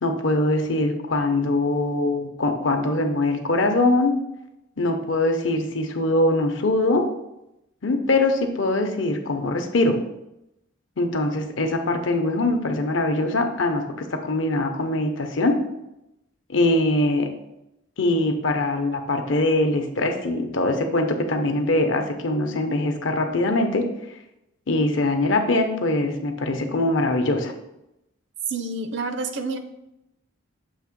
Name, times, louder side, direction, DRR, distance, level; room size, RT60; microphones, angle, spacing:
voice 1, 0.0-4.1 4.8-7.0 7.8-10.0 11.0-15.6 16.5-17.3 18.0-23.9 24.7-27.5, left 2 dB, 70° left, 5 dB, 0.8 m, -22 dB
voice 2, 28.5-29.6, right 3 dB, 65° right, 7 dB, 0.6 m, -28 dB
7.2 x 2.8 x 5.2 m, 0.87 s
head